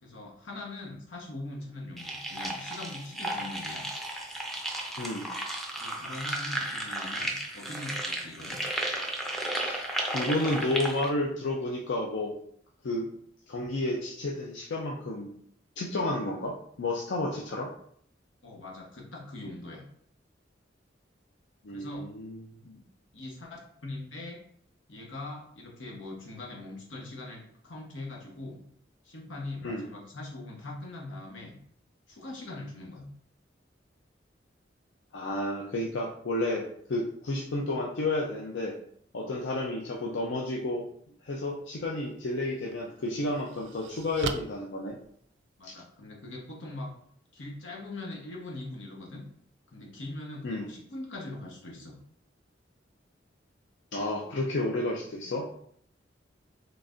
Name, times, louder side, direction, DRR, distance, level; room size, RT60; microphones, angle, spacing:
voice 1, 0.0-3.9 5.7-8.6 18.4-19.8 21.7-22.1 23.1-24.4 24.9-28.6 29.0-31.6 32.1-33.1 45.6-46.9 47.3-49.2 49.7-52.0, left 2 dB, 90° left, -1 dB, 1.0 m, -41 dB
sound 1, 2.0-11.1, right 1 dB, ahead, 0.5 m, -34 dB
voice 2, 5.0-5.3 9.5-9.8 10.1-12.4 12.8-13.1 13.5-15.3 15.8-17.7 21.6-22.8 29.6-29.8 35.1-38.7 39.1-40.8 41.2-45.0 45.6-45.7 50.4-50.7 53.9-55.5, left 2 dB, 70° left, -1 dB, 0.5 m, -31 dB
sound 2, 42.0-42.1 42.7-45.7, right 6 dB, 65° right, 0.3 m, -40 dB
3.9 x 3.2 x 2.5 m, 0.64 s
head